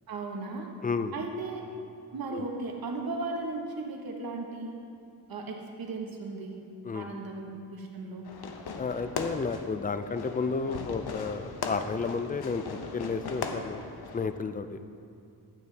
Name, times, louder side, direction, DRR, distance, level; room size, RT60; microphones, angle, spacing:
voice 1, 0.1-0.7 1.1-1.6 2.1-4.8 5.3-6.6 6.9-8.2, right 3 dB, 65° right, 1 dB, 1.4 m, -36 dB
voice 2, 0.8-1.2 2.3-2.4 6.8-7.1 8.8-13.8 14.1-14.8, left 4 dB, 25° left, 10 dB, 0.4 m, -32 dB
Fireworks, 8.2-14.3, left 4 dB, 75° left, 0.9 m, -38 dB
12.0 x 9.4 x 3.4 m, 2.6 s
wide cardioid pair, 105°, 39 cm